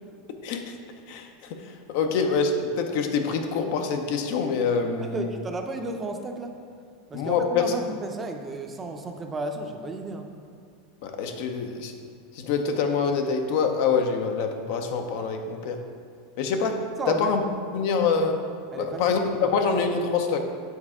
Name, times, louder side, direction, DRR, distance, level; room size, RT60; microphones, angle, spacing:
voice 1, 0.4-0.8 1.1-5.3 7.1-7.6 11.0-11.9 12.3-15.8 16.4-17.4 17.7-18.5 18.8-20.4, left 5 dB, 65° left, 5 dB, 0.6 m, -25 dB
voice 2, 5.0-6.5 7.1-10.3 17.0-17.3 18.7-19.5, right 2 dB, 20° right, 4 dB, 0.6 m, -33 dB
7.2 x 4.2 x 3.7 m, 2.1 s
supercardioid pair, 115°, 0 cm